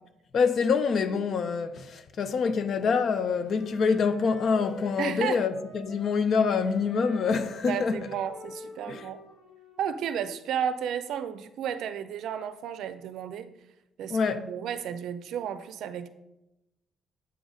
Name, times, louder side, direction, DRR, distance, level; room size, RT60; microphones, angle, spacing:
voice 1, 0.3-8.1 8.9-9.1 14.1-14.5, left 5 dB, 45° left, 0.5 m, -26 dB
Wind instrument woodwind instrument, 3.1-6.2 6.4-10.3, left 2 dB, 85° left, 2.6 m, -46 dB
voice 2, 5.0-5.4 7.7-9.2 9.8-13.5 14.0-16.1, right 8 dB, 65° right, 0.5 m, -33 dB
7.8 x 3.9 x 5.0 m
cardioid pair, 165°, 0 cm